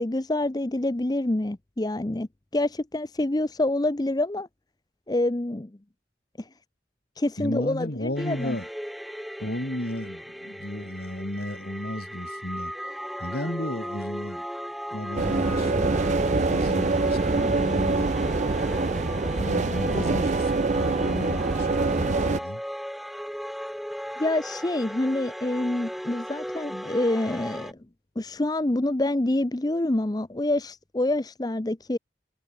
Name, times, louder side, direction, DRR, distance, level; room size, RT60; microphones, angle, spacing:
voice 1, 0.0-2.3 2.5-4.5 5.1-5.7 6.4-6.5 7.2-8.5 24.2-27.8 28.2-32.0, left 1 dB, 20° left, 0.6 m, -27 dB
voice 2, 7.4-8.7 9.4-12.7 13.2-14.5 14.9-15.7 16.2-18.1 19.4-22.6, left 1 dB, 55° left, 2.9 m, -33 dB
sound 1, 8.2-27.7, equal, ahead, 1.5 m, -36 dB
sound 2, 15.2-22.4, right 3 dB, 40° right, 0.6 m, -24 dB
head